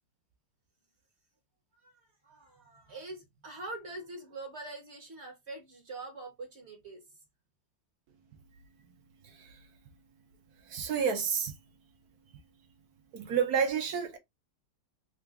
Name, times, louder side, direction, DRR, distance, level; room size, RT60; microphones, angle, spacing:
voice 1, 2.2-7.0, right 2 dB, 40° right, 1.3 m, -44 dB
voice 2, 9.2-9.7 10.6-11.5 13.1-14.2, right 7 dB, 65° right, 1.1 m, -30 dB
3.8 x 2.4 x 3.4 m
omnidirectional pair, 2.0 m